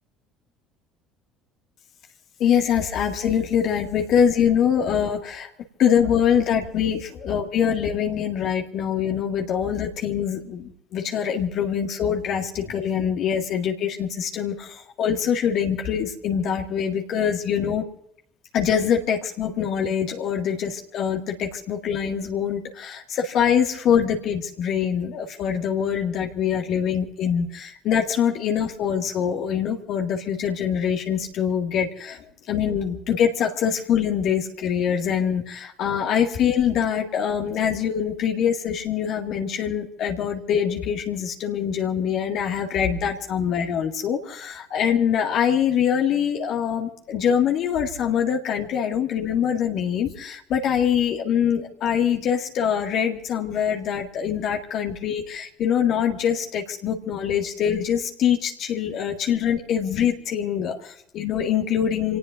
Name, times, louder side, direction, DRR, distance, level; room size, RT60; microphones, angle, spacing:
voice 1, 2.4-5.5 5.8-17.8 18.5-62.2, left 8 dB, 55° left, 2 dB, 1.9 m, -24 dB
29.0 x 18.5 x 2.6 m, 0.73 s
figure-of-eight pair, 60°, 0 cm